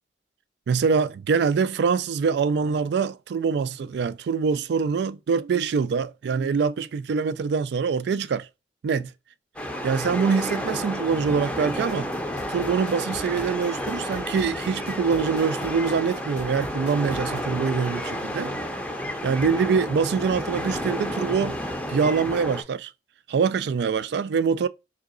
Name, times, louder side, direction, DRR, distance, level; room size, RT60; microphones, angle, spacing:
voice 1, 0.7-8.5 8.8-9.1 9.8-12.1 12.5-18.6 19.2-21.6 21.9-22.9 23.3-24.7, right 5 dB, 70° right, 0.3 m, -24 dB
sound 1, 9.6-22.6, equal, 5° left, 0.5 m, -31 dB
sound 2, 11.9-17.4, left 1 dB, 45° left, 0.7 m, -45 dB
4.7 x 2.8 x 2.4 m
head